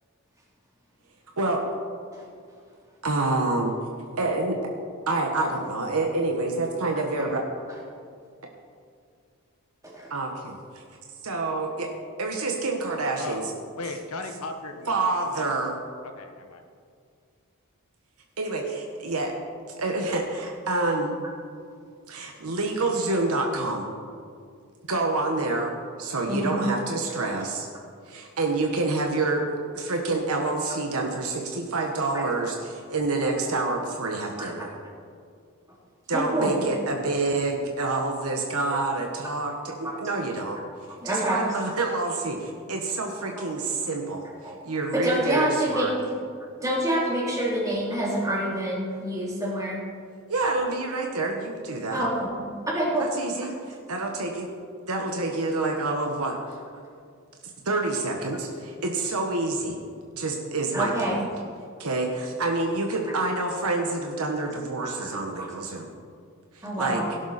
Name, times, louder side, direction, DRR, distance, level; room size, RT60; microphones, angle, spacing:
voice 1, 3.0-3.8 4.2-4.6 5.1-7.4 10.1-10.8 11.2-11.9 12.2-13.4 14.9-15.8 18.4-19.3 19.8-21.2 22.1-23.9 24.9-25.7 26.0-27.7 28.0-29.4 29.7-34.7 36.1-40.6 41.0-45.9 50.3-52.0 53.0-54.5 54.9-56.6 57.6-59.8 60.1-61.2 61.8-65.9 66.5-67.0, right 2 dB, 80° right, 2 dB, 1.3 m, -27 dB
voice 2, 13.2-15.0 15.3-15.5 16.0-16.6, left 3 dB, 85° left, 5 dB, 1.4 m, -36 dB
voice 3, 26.3-26.6 32.1-32.2 34.4-34.7 36.1-36.5 39.8-39.9 41.0-41.4 43.4-43.5 44.4-44.6 44.9-45.9 46.6-49.8 51.9-52.3 52.7-53.1 60.7-61.1 64.8-65.1 65.4-65.5 65.7-65.8 66.6-67.1, right 1 dB, 15° right, -4 dB, 3.0 m, -27 dB
17.5 x 11.5 x 4.2 m, 2.3 s
head